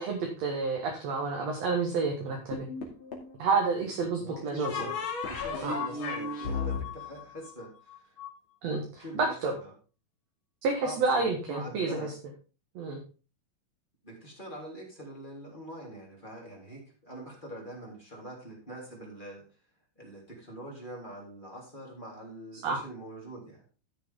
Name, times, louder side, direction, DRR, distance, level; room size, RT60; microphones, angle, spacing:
voice 1, 0.0-2.7 3.4-4.9 5.6-5.8 8.6-8.8 9.1-9.5 10.6-12.1 12.8-13.0 22.6-22.8, right 4 dB, 55° right, 1 dB, 2.2 m, -29 dB
sound 1, 2.5-3.4 4.6-8.3, left 4 dB, 40° left, 2.8 m, -34 dB
voice 2, 4.2-5.0 5.2-8.1 8.7-9.3 9.6-9.7 10.8-12.1 14.0-19.4 19.9-23.6, right 1 dB, 15° left, -2 dB, 3.4 m, -44 dB
14.0 x 6.7 x 3.7 m, 0.35 s
omnidirectional pair, 4.1 m